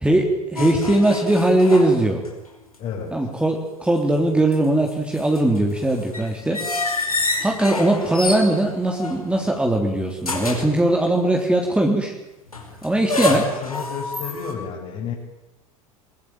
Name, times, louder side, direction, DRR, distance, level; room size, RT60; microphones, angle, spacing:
voice 1, 0.0-2.2 3.1-6.6 7.4-12.1 12.8-13.4, right 1 dB, 5° right, 2 dB, 3.5 m, -20 dB
sound 1, 0.6-2.5 2.7-2.8 4.3-9.6 10.2-10.8 12.5-14.5, left 2 dB, 85° left, 5.2 m, -28 dB
voice 2, 2.8-3.1 13.3-15.1, left 6 dB, 40° left, -3 dB, 6.3 m, -31 dB
23.5 x 22.5 x 9.2 m, 0.94 s
figure-of-eight pair, 80°, 18 cm